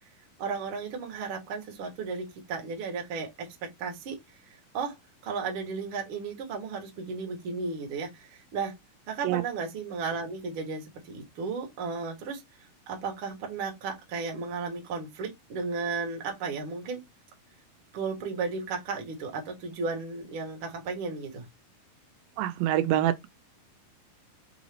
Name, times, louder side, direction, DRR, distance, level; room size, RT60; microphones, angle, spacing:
voice 1, 0.4-4.2 4.5-5.0 5.2-8.7 9.1-12.4 12.9-17.0 17.9-21.5, right 4 dB, 60° right, 1.4 m, -34 dB
voice 2, 22.4-23.3, right 13 dB, 85° right, 2.3 m, -25 dB
5.4 x 2.5 x 3.2 m
omnidirectional pair, 4.1 m